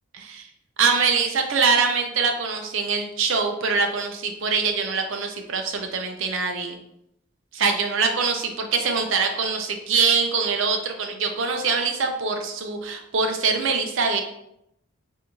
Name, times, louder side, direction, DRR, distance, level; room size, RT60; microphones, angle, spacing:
voice 1, 0.1-0.5 0.8-6.8 7.5-14.2, right 5 dB, 65° right, 4 dB, 0.5 m, -23 dB
3.6 x 2.6 x 3.0 m, 0.78 s
head